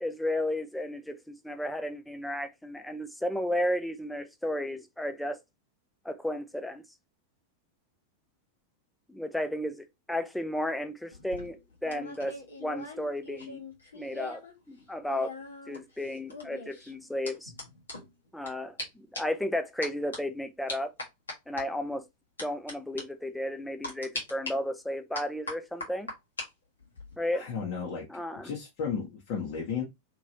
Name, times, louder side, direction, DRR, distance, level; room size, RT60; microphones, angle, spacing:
voice 1, 0.0-5.4 6.0-6.8 9.1-13.6 13.9-14.4 14.7-15.4 15.7-17.5 18.3-20.9 21.5-22.0 22.4-26.1 27.2-27.4 28.1-28.5, left 1 dB, 5° left, 0.5 m, -33 dB
sound 1, 11.1-14.5 14.8-18.5 18.8-18.9 19.1-19.4 19.8-20.2 20.7-21.6 22.4-22.7 23.0-23.1 23.8-24.5 25.1-26.5 26.8-27.2, left 2 dB, 75° left, 1.2 m, -40 dB
voice 2, 27.3-28.1 28.4-29.8, left 6 dB, 45° left, 1.0 m, -33 dB
3.0 x 2.9 x 2.6 m
figure-of-eight pair, 90°, 0 cm